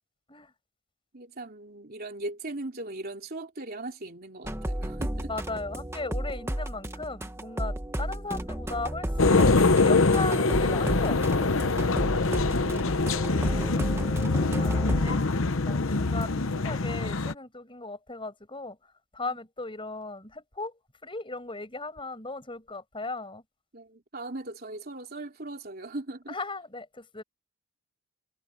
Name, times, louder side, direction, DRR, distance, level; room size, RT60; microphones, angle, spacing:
voice 1, 1.1-5.3 12.5-13.8 16.4-16.6 23.7-26.3, right 2 dB, 45° right, 3.2 m, -39 dB
sound 1, 4.4-15.2, right 1 dB, 10° right, 1.3 m, -33 dB
voice 2, 5.3-11.5 14.6-18.8 19.1-20.7 21.0-23.4 26.3-27.2, left 3 dB, 25° left, 7.0 m, -37 dB
sound 2, 9.2-17.3, left 3 dB, 60° left, 0.9 m, -24 dB
head